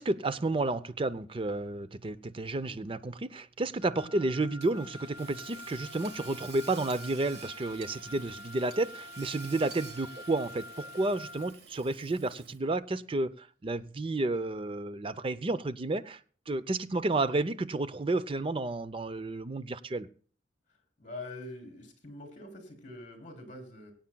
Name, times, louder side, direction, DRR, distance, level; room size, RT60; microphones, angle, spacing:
voice 1, 0.0-16.2 16.5-20.1, right 2 dB, 30° right, 14 dB, 0.5 m, -31 dB
Wind instrument woodwind instrument, 3.8-11.6, left 2 dB, 80° left, 0.5 m, -47 dB
Hammer / Sawing, 4.6-12.8, right 5 dB, 60° right, 1.4 m, -50 dB
voice 2, 21.0-23.9, left 2 dB, 40° left, 3 dB, 3.5 m, -45 dB
23.0 x 8.7 x 2.2 m, 0.43 s
head